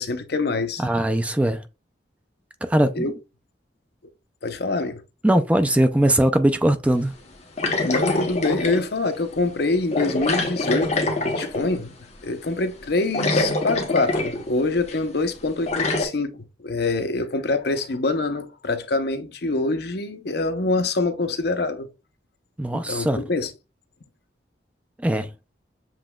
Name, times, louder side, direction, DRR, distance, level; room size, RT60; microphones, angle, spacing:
voice 1, 0.0-0.8 3.0-3.1 4.4-5.0 7.8-11.9 12.2-21.9 22.7-23.5, left 3 dB, 60° left, 0.7 m, -25 dB
voice 2, 0.8-1.6 2.6-3.0 5.2-7.2 22.6-23.2 25.0-25.3, right 1 dB, 5° right, 0.3 m, -20 dB
sound 1, 7.6-8.9 9.9-11.8 12.8-12.9 13.1-14.5 14.9-15.0 15.7-16.1, left 2 dB, 40° left, 1.0 m, -24 dB
7.4 x 2.9 x 2.3 m
head